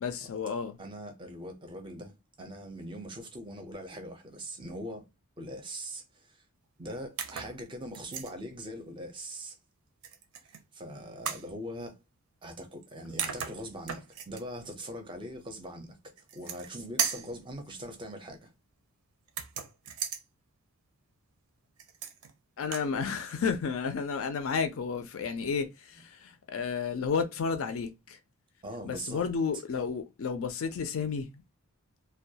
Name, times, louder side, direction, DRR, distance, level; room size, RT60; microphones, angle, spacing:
voice 1, 0.0-0.8 22.6-28.2 28.8-31.3, left 5 dB, 65° left, 0.4 m, -32 dB
voice 2, 0.8-5.1 5.4-6.4 6.8-9.6 10.7-12.0 12.4-18.5 28.6-29.3 29.5-29.6, equal, 20° right, 0.5 m, -41 dB
sound 1, 7.2-7.5 7.9-8.3 10.0-10.6 11.2-11.5 12.8-12.9 13.2-14.4 16.2-16.7 17.0-17.3 19.3-20.2 21.8-22.3 22.6-22.9, right 7 dB, 85° right, 0.5 m, -35 dB
2.2 x 2.2 x 2.7 m
head